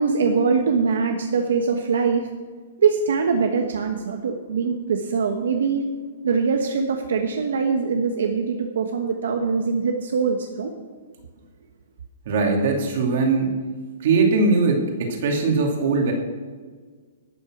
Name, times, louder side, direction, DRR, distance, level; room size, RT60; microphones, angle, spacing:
voice 1, 0.0-2.3 2.8-5.8 6.2-10.7, right 5 dB, 70° right, 3 dB, 1.3 m, -22 dB
voice 2, 12.3-13.6 14.0-16.1, right 4 dB, 40° right, 1 dB, 2.5 m, -20 dB
12.0 x 9.0 x 6.1 m, 1.5 s
hypercardioid pair, 180°, 0 cm